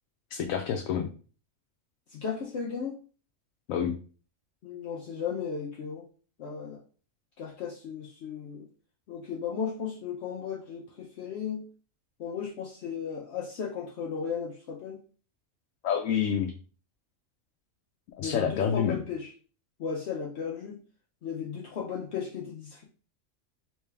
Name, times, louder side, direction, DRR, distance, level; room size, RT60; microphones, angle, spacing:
voice 1, 0.3-1.1 3.7-4.0 15.8-16.5 18.2-19.0, left 7 dB, 90° left, 3 dB, 1.0 m, -28 dB
voice 2, 2.1-3.0 4.6-6.0 6.4-6.8 7.4-8.7 9.1-11.7 12.2-15.0 18.2-19.3 19.8-20.8 21.2-22.8, left 6 dB, 65° left, -2 dB, 0.8 m, -35 dB
3.3 x 3.2 x 3.3 m, 0.39 s
omnidirectional pair, 1.4 m